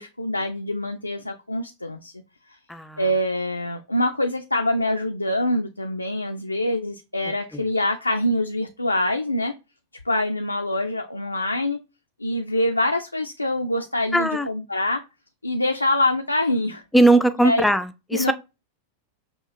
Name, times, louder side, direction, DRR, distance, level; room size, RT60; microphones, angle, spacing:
voice 1, 0.0-2.1 2.5-2.6 3.0-9.5 10.1-11.8 12.2-15.0 15.4-16.8 17.4-17.6 18.1-18.3, left 1 dB, 85° left, 0.3 m, -25 dB
voice 2, 2.7-3.0 7.5-7.6 14.1-14.5 16.9-18.3, right 1 dB, 5° left, 0.4 m, -19 dB
5.6 x 2.4 x 2.6 m
figure-of-eight pair, 90°, 0 cm